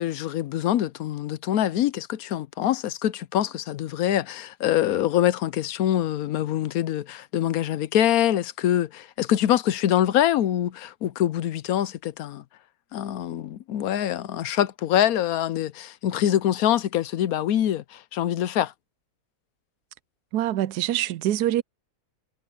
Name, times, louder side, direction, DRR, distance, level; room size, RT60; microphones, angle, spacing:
voice 1, 0.0-12.4 12.9-18.7, left 11 dB, 70° left, 1.1 m, -24 dB
voice 2, 20.3-21.6, right 13 dB, 80° right, 1.1 m, -24 dB
omnidirectional pair, 1.7 m